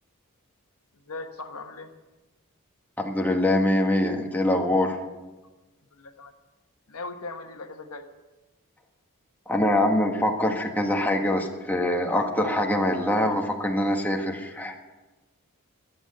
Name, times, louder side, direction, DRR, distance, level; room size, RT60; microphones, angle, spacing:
voice 1, 1.1-1.9 5.9-6.3 6.9-8.0, left 3 dB, 70° left, 6 dB, 1.3 m, -38 dB
voice 2, 3.0-5.0 9.5-14.7, left 1 dB, 10° left, 1 dB, 1.5 m, -24 dB
22.5 x 8.1 x 6.6 m, 1.1 s
head